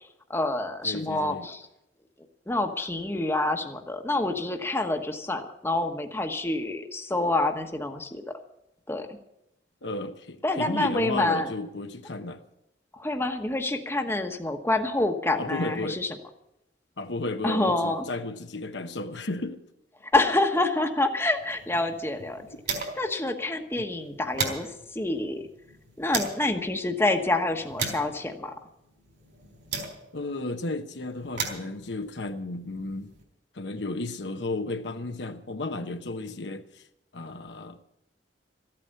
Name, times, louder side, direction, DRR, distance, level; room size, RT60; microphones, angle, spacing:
voice 1, 0.3-1.6 2.5-8.4 8.9-9.2 10.4-11.5 13.0-16.1 17.4-18.0 20.1-22.5 23.0-24.7 24.9-25.5 26.0-28.5, left 2 dB, 15° left, 1.1 m, -27 dB
voice 2, 0.8-1.5 9.8-12.4 15.4-16.0 17.0-19.6 30.1-33.1 33.5-36.8 37.1-37.8, left 2 dB, 70° left, 1.0 m, -33 dB
sound 1, 21.4-23.2 23.5-23.6 23.9-26.5 27.1-30.3 31.0-33.2, right 4 dB, 70° right, 3.9 m, -36 dB
14.0 x 8.8 x 8.7 m
head